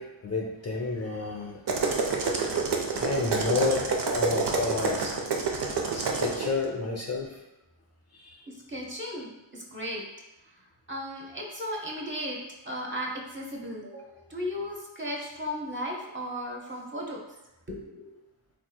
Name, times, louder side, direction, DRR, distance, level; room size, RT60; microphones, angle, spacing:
voice 1, 0.0-1.6 2.2-5.1 5.9-7.4 8.1-8.4, left 3 dB, 35° left, -1 dB, 0.5 m, -31 dB
sound 1, 1.7-6.5, right 4 dB, 65° right, 0.6 m, -28 dB
voice 2, 8.5-10.0 10.9-12.4 12.6-17.2 17.7-18.0, equal, 25° right, -3 dB, 0.7 m, -35 dB
3.3 x 2.9 x 2.2 m, 0.94 s
wide cardioid pair, 55°, 43 cm